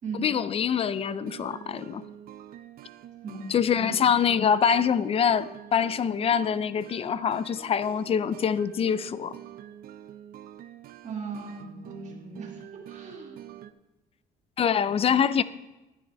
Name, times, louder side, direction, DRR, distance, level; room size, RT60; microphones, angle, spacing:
voice 1, 0.2-2.0 3.5-9.4 14.6-15.4, left 7 dB, 35° left, 0.4 m, -25 dB
sound 1, 0.8-13.7, right 11 dB, 60° right, 0.5 m, -46 dB
voice 2, 11.0-13.4, right 5 dB, 45° right, 2.3 m, -38 dB
11.5 x 9.9 x 3.4 m
cardioid pair, 110°, 17 cm